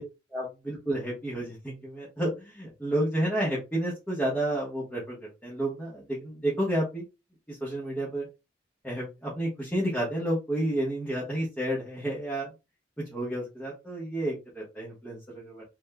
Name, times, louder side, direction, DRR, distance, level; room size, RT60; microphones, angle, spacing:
voice 1, 0.3-7.0 7.5-8.3 8.8-12.5 13.1-15.6, right 1 dB, 10° left, -5 dB, 1.1 m, -31 dB
3.5 x 3.4 x 2.2 m, 0.26 s
head